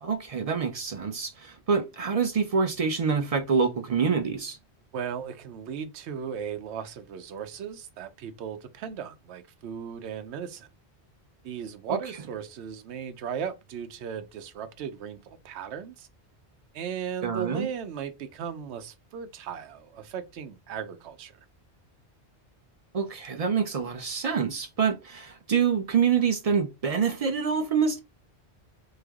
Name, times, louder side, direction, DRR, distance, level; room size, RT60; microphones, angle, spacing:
voice 1, 0.0-4.6 11.9-12.0 17.2-17.7 22.9-28.0, right 6 dB, 50° right, 0.4 m, -26 dB
voice 2, 4.9-10.7 11.4-16.1 16.7-21.3, right 7 dB, 85° right, 0.9 m, -36 dB
3.2 x 2.1 x 3.4 m
omnidirectional pair, 1.1 m